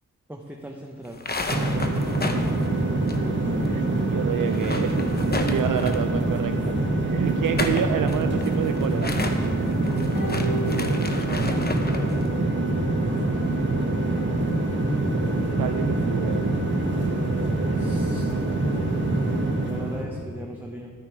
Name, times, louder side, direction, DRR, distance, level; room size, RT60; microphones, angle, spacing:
voice 1, 0.3-1.2 17.7-18.3 19.6-20.9, right 1 dB, 5° right, 1 dB, 0.9 m, -39 dB
sound 1, 1.1-3.7 3.9-4.0 4.4-6.2 7.3-12.1, left 2 dB, 30° left, 0.9 m, -32 dB
sound 2, 1.5-20.1, right 2 dB, 35° right, 1.5 m, -25 dB
voice 2, 3.7-9.1 9.9-11.7 15.6-16.5 17.9-18.0, right 8 dB, 75° right, 7 dB, 0.5 m, -29 dB
sound 3, 10.1-11.8 12.1-12.2, left 1 dB, 75° left, 1.3 m, -35 dB
12.0 x 9.8 x 4.5 m, 2.1 s
wide cardioid pair, 85°, 33 cm